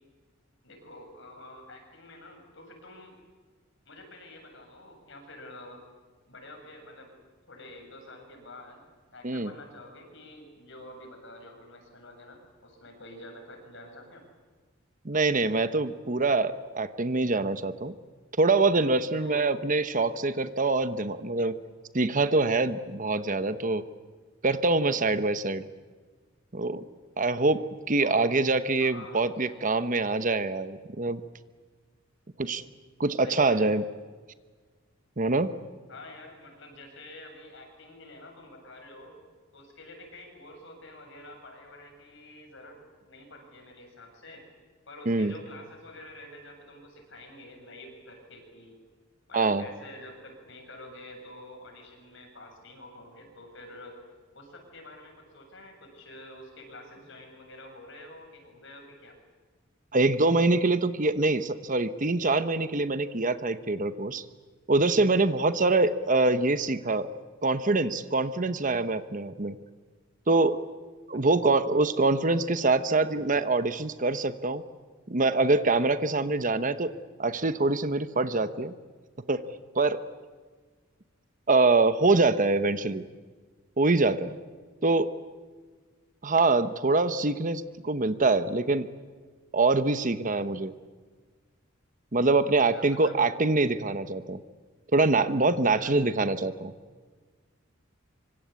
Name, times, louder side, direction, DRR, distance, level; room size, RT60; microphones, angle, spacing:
voice 1, 0.6-3.2 3.9-5.8 6.3-7.1 7.5-14.3 19.2-19.5 28.0-28.3 28.8-29.2 29.5-29.7 33.2-33.7 35.9-39.2 39.5-44.4 44.9-48.8 49.3-54.0 54.3-59.2 71.1-71.2 92.6-93.3 95.8-96.0, left 1 dB, 65° left, 3 dB, 7.6 m, -47 dB
voice 2, 15.0-17.9 18.4-21.6 21.9-23.8 24.4-25.6 26.5-26.8 27.2-27.6 27.9-31.2 32.4-32.6 33.0-33.8 35.2-35.5 45.1-45.3 49.3-49.6 59.9-64.2 64.7-67.1 67.4-69.6 70.3-70.6 71.1-74.6 75.1-76.9 77.2-78.7 79.3-79.5 79.7-80.0 81.5-83.0 83.8-84.3 84.8-85.1 86.2-88.9 89.5-90.7 92.1-94.4 94.9-96.7, right 3 dB, 40° right, 11 dB, 1.1 m, -24 dB
25.5 x 25.0 x 8.4 m, 1.5 s
head